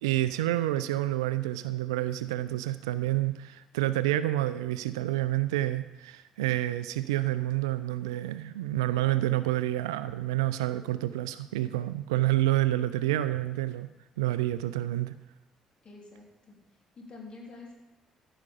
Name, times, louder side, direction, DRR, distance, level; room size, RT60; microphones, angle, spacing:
voice 1, 0.0-13.9 14.2-15.1, right 15 dB, 80° right, 14 dB, 0.4 m, -28 dB
voice 2, 15.8-16.6 17.0-17.8, left 3 dB, 40° left, -2 dB, 3.4 m, -47 dB
14.0 x 5.7 x 5.3 m, 1.0 s
figure-of-eight pair, 45°, 3 cm